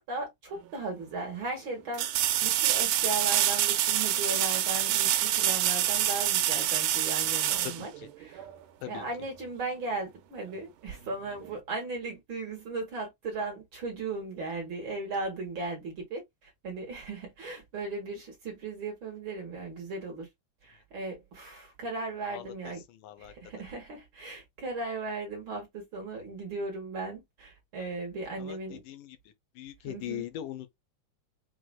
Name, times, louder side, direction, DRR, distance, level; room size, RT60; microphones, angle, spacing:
voice 1, 0.0-2.1 2.4-7.9 8.2-8.5 8.8-20.3 20.6-22.8 23.2-28.8 29.8-30.3, right 3 dB, 45° right, 2.2 m, -37 dB
sound 1, 0.6-0.7 1.9-8.5 11.4-11.5, right 12 dB, 90° right, 2.2 m, -26 dB
voice 2, 28.4-29.2 29.6-30.8, left 12 dB, 80° left, 2.3 m, -40 dB
6.2 x 3.0 x 2.3 m
omnidirectional pair, 3.6 m